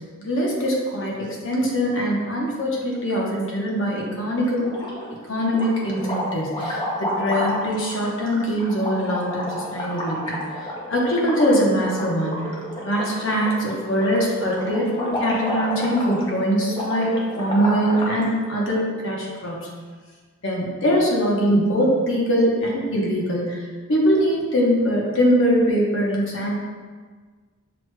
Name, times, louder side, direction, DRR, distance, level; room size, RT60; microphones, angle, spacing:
voice 1, 0.2-4.7 5.3-10.4 10.9-12.4 12.8-19.7 20.4-26.6, equal, 55° left, -3 dB, 0.8 m, -22 dB
sound 1, 4.5-5.2 5.5-18.2, left 1 dB, 20° left, 0.5 m, -30 dB
6.1 x 3.0 x 2.2 m, 1.5 s
head